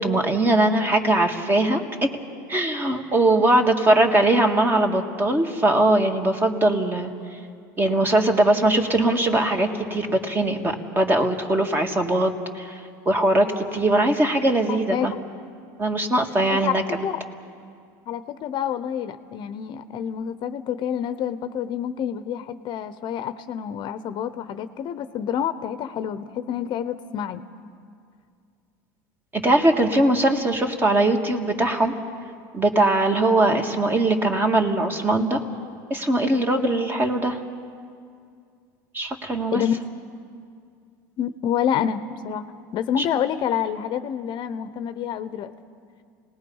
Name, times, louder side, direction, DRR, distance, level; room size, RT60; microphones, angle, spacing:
voice 1, 0.0-2.1 2.5-7.1 7.8-12.8 13.1-15.1 15.8-16.8 29.3-32.0 32.5-35.4 35.9-37.4 38.9-39.6, right 1 dB, 20° right, 4 dB, 2.2 m, -21 dB
voice 2, 14.7-15.2 16.5-17.2 18.1-27.4 39.5-39.8 41.2-45.5, left 9 dB, 50° left, 11 dB, 0.9 m, -28 dB
29.5 x 19.5 x 5.6 m, 2.3 s
supercardioid pair, 110°, 10 cm